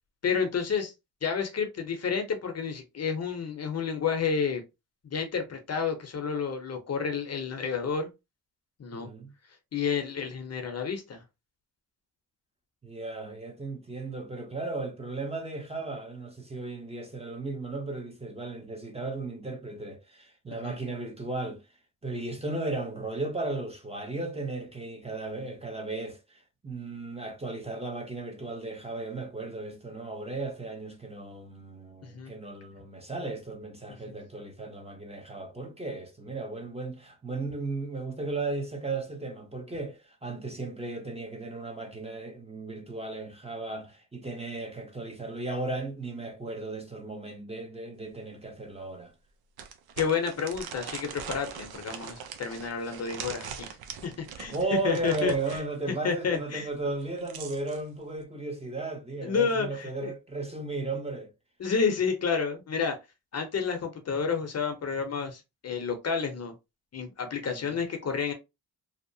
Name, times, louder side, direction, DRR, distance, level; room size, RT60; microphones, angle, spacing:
voice 1, 0.2-0.9 1.2-4.6 5.0-8.1 8.8-9.1 9.7-11.2 20.6-20.8 32.0-32.3 34.1-34.2 50.0-53.8 54.0-54.5 54.8-55.3 56.0-56.7 59.2-60.1 61.6-63.0 63.3-66.5 66.9-68.3, left 6 dB, 45° left, 0.7 m, -30 dB
voice 2, 8.9-9.3 12.8-21.6 22.0-49.1 54.5-61.3 67.5-67.7, right 3 dB, 15° right, 0.7 m, -35 dB
sound 1, 48.1-48.2 48.6-48.7 49.6-55.7 56.9-57.8, right 7 dB, 75° right, 0.6 m, -42 dB
2.7 x 2.1 x 2.6 m
cardioid pair, 95°, 37 cm